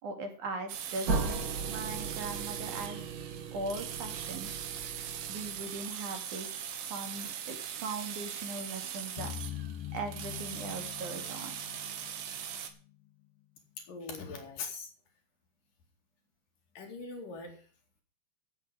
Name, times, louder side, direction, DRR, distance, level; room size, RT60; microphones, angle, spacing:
voice 1, 0.0-3.1 3.5-4.5 5.3-6.6 6.9-9.3 9.9-11.6, right 3 dB, 60° right, 5 dB, 3.8 m, -40 dB
sound 1, 0.7-12.7, right 9 dB, 80° right, 3.3 m, -40 dB
sound 2, 1.1-5.8, right 4 dB, 40° right, 1.3 m, -37 dB
sound 3, 9.2-12.9, left 11 dB, 90° left, 2.6 m, -43 dB
voice 2, 13.8-14.9 16.8-17.6, left 4 dB, 70° left, 3 dB, 4.0 m, -41 dB
16.5 x 8.1 x 5.0 m, 0.41 s
omnidirectional pair, 4.0 m